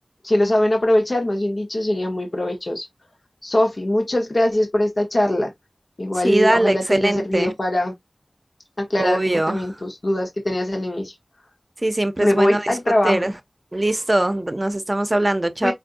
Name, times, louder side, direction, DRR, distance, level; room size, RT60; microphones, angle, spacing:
voice 1, 0.2-2.9 3.4-5.5 6.0-7.9 8.8-11.1 12.2-13.3 15.6-15.7, left 1 dB, 55° left, 1.1 m, -21 dB
voice 2, 6.2-7.5 9.0-9.6 11.8-12.8 13.0-13.3 13.7-15.7, right 1 dB, 35° right, 0.7 m, -21 dB
5.2 x 2.6 x 2.6 m
wide cardioid pair, 55°, 0 cm